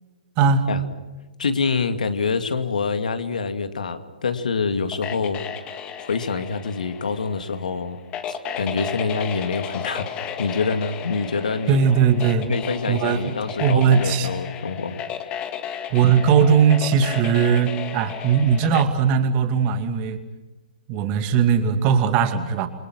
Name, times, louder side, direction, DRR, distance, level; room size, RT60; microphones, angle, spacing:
voice 1, 0.4-0.7 11.7-12.5 12.9-13.3 13.6-14.3 15.9-20.2 20.9-22.7, right 7 dB, 30° right, 8 dB, 2.5 m, -19 dB
voice 2, 1.4-5.4 6.0-8.0 8.3-10.1 10.4-11.8 12.5-15.0, left 4 dB, 65° left, 8 dB, 2.4 m, -26 dB
sound 1, 4.9-18.8, left 8 dB, 20° left, 2.0 m, -34 dB
28.5 x 24.0 x 6.1 m, 1.2 s
figure-of-eight pair, 125°, 5 cm